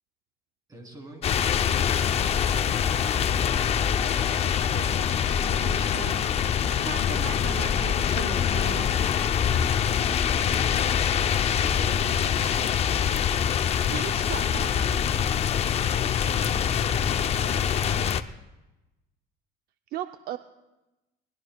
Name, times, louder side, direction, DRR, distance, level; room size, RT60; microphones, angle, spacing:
voice 1, 0.7-2.2 9.4-10.7 11.3-13.6 15.8-18.2, right 1 dB, 20° right, 1 dB, 3.3 m, -47 dB
sound 1, 1.2-18.2, left 8 dB, 35° left, 0.5 m, -24 dB
voice 2, 4.1-8.9 13.9-15.0 19.9-20.4, right 12 dB, 55° right, 8 dB, 0.5 m, -39 dB
22.5 x 19.5 x 2.3 m, 1.0 s
cardioid pair, 150°, 19 cm